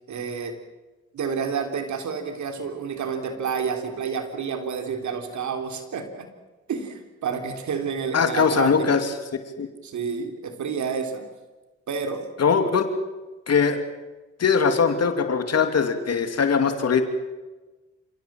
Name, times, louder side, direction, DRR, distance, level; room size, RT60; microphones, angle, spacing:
voice 1, 0.1-0.6 1.1-6.3 6.7-9.0 9.8-11.3 11.9-12.3, right 6 dB, 75° right, 6 dB, 3.6 m, -29 dB
voice 2, 8.1-9.7 12.4-12.9 13.5-13.8 14.4-17.0, left 6 dB, 60° left, 7 dB, 2.8 m, -21 dB
29.0 x 17.0 x 7.6 m, 1.2 s
cardioid pair, 65°, 29 cm